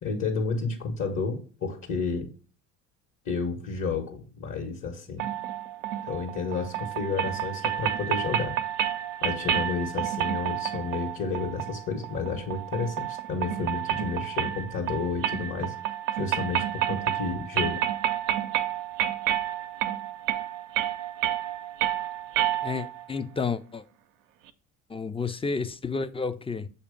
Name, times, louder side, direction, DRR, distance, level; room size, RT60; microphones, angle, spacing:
voice 1, 0.0-2.3 3.2-5.3 6.0-8.6 9.2-15.7 16.2-17.8, left 4 dB, 50° left, 1.6 m, -31 dB
sound 1, 5.2-23.1, right 11 dB, 85° right, 0.6 m, -30 dB
voice 2, 22.6-23.8 24.9-26.7, left 4 dB, 15° left, 0.6 m, -31 dB
6.7 x 2.8 x 5.1 m
hypercardioid pair, 65°, 37 cm